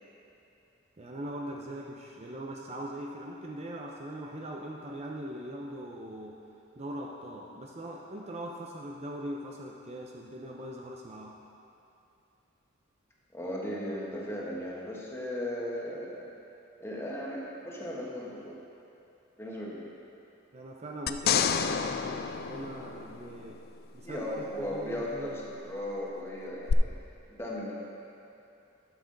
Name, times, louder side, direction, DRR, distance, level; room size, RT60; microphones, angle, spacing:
voice 1, 1.0-6.4 6.8-11.4 20.5-23.6 23.9-25.4, right 1 dB, 30° right, -1 dB, 0.6 m, -41 dB
voice 2, 13.3-16.3 16.8-18.6 19.4-19.9 24.0-26.9 27.3-27.7, left 1 dB, 15° left, -5 dB, 1.4 m, -36 dB
sound 1, 21.1-23.6 26.7-26.8, left 7 dB, 50° left, 0.3 m, -29 dB
12.0 x 7.3 x 3.9 m, 2.7 s
head